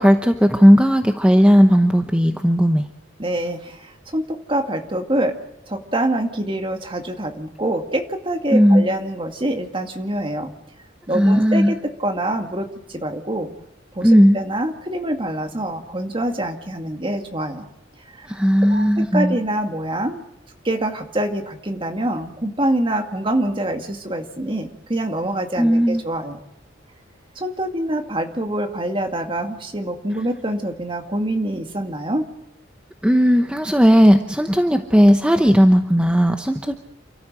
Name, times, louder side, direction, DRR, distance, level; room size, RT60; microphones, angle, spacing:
voice 1, 0.0-2.9 8.5-8.8 11.1-11.7 14.0-14.4 18.2-19.3 25.6-26.0 33.0-36.8, equal, 5° right, 6 dB, 0.9 m, -15 dB
voice 2, 3.2-5.4 5.7-10.5 11.1-13.5 14.0-17.6 18.1-18.4 18.7-20.2 20.6-26.4 27.4-32.3, right 1 dB, 25° right, 5 dB, 2.1 m, -25 dB
29.0 x 14.0 x 7.7 m, 0.87 s
head